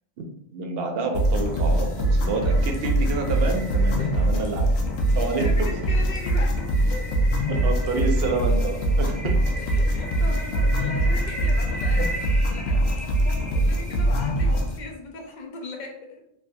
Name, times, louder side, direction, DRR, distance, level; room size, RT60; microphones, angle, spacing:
voice 1, 0.5-4.8 5.1-5.7 7.6-9.4 12.0-12.1, right 3 dB, 70° right, 3 dB, 0.8 m, -28 dB
sound 1, 1.1-14.8, right 1 dB, 75° left, 0.9 m, -23 dB
sound 2, 1.3-14.7, right 1 dB, ahead, 0.6 m, -39 dB
voice 2, 5.1-7.2 9.7-16.2, left 2 dB, 55° left, 1 dB, 0.6 m, -39 dB
3.3 x 2.6 x 2.2 m, 0.77 s
omnidirectional pair, 1.1 m